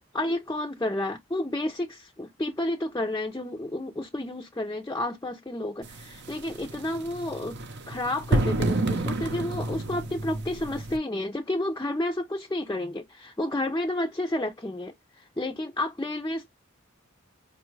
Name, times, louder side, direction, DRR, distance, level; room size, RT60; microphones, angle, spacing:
voice 1, 0.1-7.6 7.9-16.5, left 1 dB, 15° left, 0.5 m, -31 dB
sound 1, 5.8-11.0, right 2 dB, 55° right, 0.7 m, -30 dB
4.8 x 2.3 x 3.1 m
head